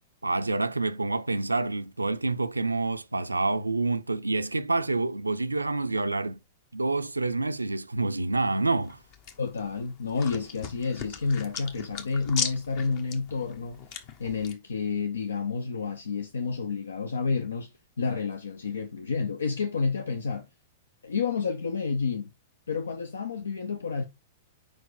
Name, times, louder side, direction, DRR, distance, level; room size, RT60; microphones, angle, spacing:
voice 1, 0.2-6.4 6.7-9.0, right 3 dB, 85° right, 0.4 m, -27 dB
sound 1, 8.8-14.5, left 7 dB, 40° left, 1.1 m, -38 dB
voice 2, 9.4-13.9 14.2-20.5 21.0-22.3 22.7-24.0, left 5 dB, 70° left, 0.6 m, -30 dB
5.0 x 4.5 x 4.6 m
figure-of-eight pair, 100°, 0 cm